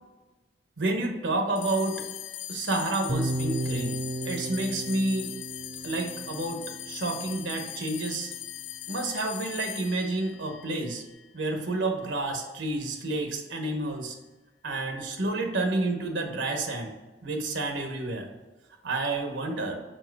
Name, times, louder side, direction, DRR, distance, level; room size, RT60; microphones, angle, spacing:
voice 1, 0.8-2.0 2.5-4.0 4.2-5.3 5.8-8.3 8.9-11.0 11.3-14.2 14.6-16.9 17.2-18.3 18.8-19.8, right 2 dB, 85° right, 4 dB, 1.0 m, -30 dB
sound 1, 1.6-12.2, left 12 dB, 75° left, 0.5 m, -40 dB
sound 2, 3.1-7.2, right 1 dB, 25° right, 0.4 m, -34 dB
4.7 x 4.5 x 4.6 m, 1.2 s
head